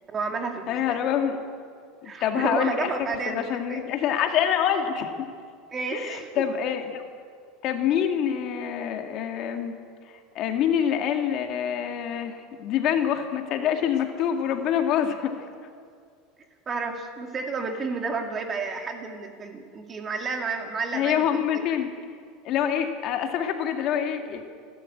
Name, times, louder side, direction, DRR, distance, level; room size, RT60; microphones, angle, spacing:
voice 1, 0.1-1.0 2.0-3.8 5.7-6.3 16.7-21.6, right 4 dB, 25° right, 4 dB, 2.3 m, -31 dB
voice 2, 0.7-1.4 2.0-2.8 3.3-5.3 5.9-7.0 7.6-9.8 10.4-15.4 20.9-21.9 22.4-24.4, left 9 dB, 45° left, 5 dB, 2.0 m, -26 dB
29.0 x 12.5 x 8.6 m, 2.1 s
supercardioid pair, 155°, 0 cm